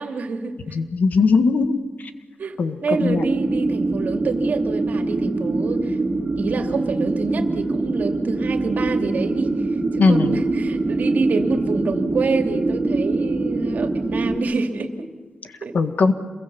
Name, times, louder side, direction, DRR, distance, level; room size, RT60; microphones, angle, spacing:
voice 1, 0.0-0.8 2.4-6.0 6.4-15.1 15.6-15.8, right 4 dB, 70° right, 4 dB, 2.7 m, -27 dB
voice 2, 0.7-1.8 2.6-2.8 3.0-3.2 10.0-10.4 15.7-16.1, left 4 dB, 70° left, 8 dB, 1.7 m, -18 dB
sound 1, 2.9-14.4, right 2 dB, 30° right, 3.8 m, -23 dB
27.5 x 22.5 x 7.1 m, 1.4 s
wide cardioid pair, 105°, 3 cm